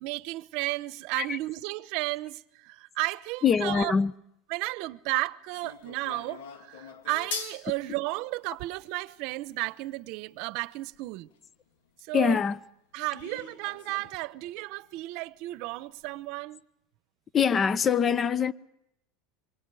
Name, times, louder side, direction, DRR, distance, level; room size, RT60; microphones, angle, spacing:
voice 1, 0.0-3.9 4.5-11.3 12.0-12.4 12.9-16.6, right 21 dB, 60° right, 0.9 m, -33 dB
voice 2, 3.4-4.1 12.1-12.6 17.3-18.5, left 6 dB, 25° left, 0.8 m, -24 dB
sound 1, 5.5-11.4 11.9-12.0 12.4-12.5 13.1-14.3 14.6-14.7 15.0-15.1 15.7-15.8 16.0-16.1, left 6 dB, 80° left, 3.0 m, -43 dB
27.0 x 24.0 x 4.9 m
supercardioid pair, 130°, 0 cm